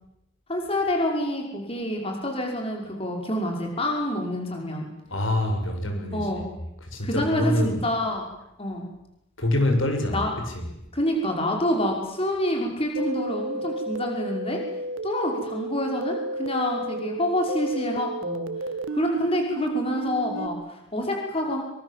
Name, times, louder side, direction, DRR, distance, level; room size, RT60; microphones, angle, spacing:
voice 1, 0.5-4.9 6.1-6.4 7.0-8.2 8.6-8.9 10.1-10.3 10.9-14.6 15.0-18.5 18.9-21.6, left 1 dB, 30° left, 1 dB, 5.5 m, -27 dB
voice 2, 5.1-6.3 6.9-7.8 9.4-10.6, left 1 dB, 75° left, 5 dB, 6.5 m, -25 dB
sound 1, 13.0-20.5, right 2 dB, 80° right, 1.8 m, -32 dB
27.0 x 25.0 x 7.5 m, 0.85 s
head